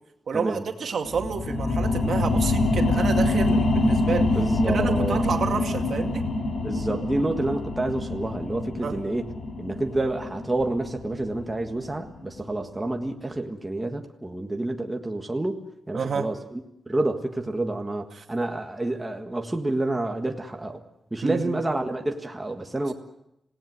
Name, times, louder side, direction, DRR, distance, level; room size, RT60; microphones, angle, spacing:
voice 1, 0.3-4.4 4.7-6.3 8.8-9.0 15.9-16.3 18.1-18.2 21.2-21.6, right 6 dB, 65° right, 4 dB, 2.3 m, -29 dB
sound 1, 1.0-12.2 12.6-12.7, left 2 dB, 55° left, 3.0 m, -25 dB
voice 2, 4.3-5.2 6.6-9.3 9.6-15.6 15.9-16.6 16.9-20.8 21.1-22.9, right 2 dB, 15° right, 3 dB, 1.6 m, -28 dB
27.0 x 18.0 x 7.7 m, 0.84 s
wide cardioid pair, 145°, 0 cm